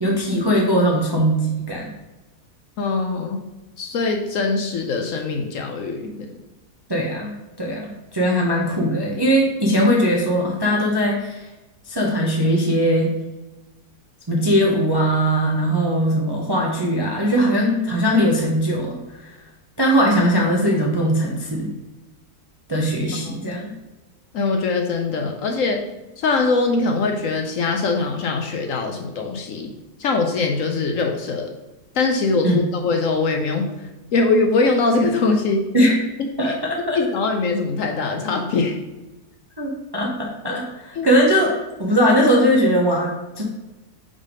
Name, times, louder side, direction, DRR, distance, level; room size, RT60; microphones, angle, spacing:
voice 1, 0.0-1.9 6.9-11.5 11.8-13.1 14.3-19.4 19.8-21.7 22.7-23.7 32.4-32.6 35.7-36.0 36.4-37.0 39.6-41.5 41.8-43.4, equal, 25° right, -2 dB, 0.5 m, -20 dB
voice 2, 2.8-3.4 3.8-6.3 23.2-23.4 24.3-25.8 26.2-29.7 30.0-31.5 31.9-35.7 36.4-36.5 36.9-38.8 41.0-41.1, left 3 dB, 65° left, 4 dB, 0.9 m, -22 dB
5.4 x 3.4 x 5.1 m, 1.1 s
omnidirectional pair, 1.7 m